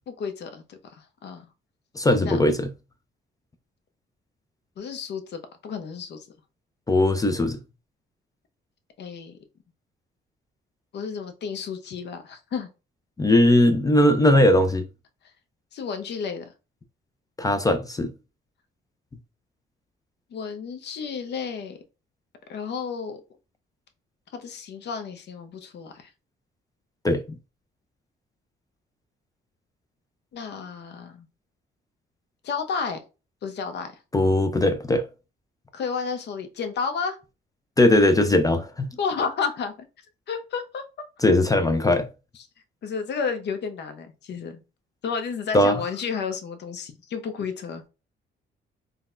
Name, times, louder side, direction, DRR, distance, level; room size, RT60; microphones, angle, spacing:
voice 1, 0.2-1.5 2.2-2.4 4.8-6.3 9.0-9.4 10.9-12.7 15.7-16.5 20.3-21.8 22.5-23.2 24.3-26.1 30.3-31.3 32.4-33.0 33.4-34.0 35.7-37.2 39.0-39.7 40.3-40.8 42.8-44.6 45.0-47.9, left 6 dB, 60° left, 0.7 m, -32 dB
voice 2, 1.9-2.7 6.9-7.6 13.2-14.9 17.4-18.1 27.0-27.2 34.1-35.0 37.8-38.9 41.2-42.1 45.5-45.8, left 1 dB, 20° left, 0.4 m, -19 dB
3.9 x 2.1 x 2.4 m
cardioid pair, 90°, 20 cm